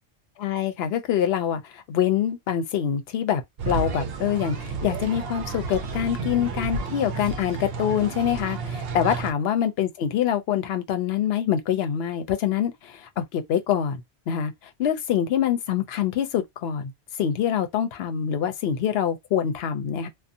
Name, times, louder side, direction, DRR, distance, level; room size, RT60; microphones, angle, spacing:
voice 1, 0.4-14.5 14.8-16.9 17.2-20.1, left 9 dB, 70° left, 0.8 m, -25 dB
sound 1, 3.6-9.3, right 4 dB, 65° right, 0.8 m, -31 dB
2.7 x 2.2 x 2.5 m
omnidirectional pair, 1.1 m